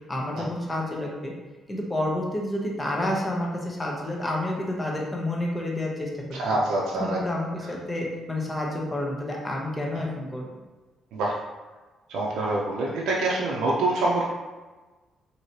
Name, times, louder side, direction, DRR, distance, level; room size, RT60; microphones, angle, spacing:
voice 1, 0.1-1.3 1.7-6.4 7.0-10.5, left 1 dB, 20° left, -2 dB, 0.8 m, -29 dB
voice 2, 6.3-7.2 11.1-11.4 12.1-14.3, right 2 dB, 85° right, -4 dB, 0.4 m, -25 dB
3.1 x 2.7 x 2.7 m, 1.3 s
cardioid pair, 90°, 0 cm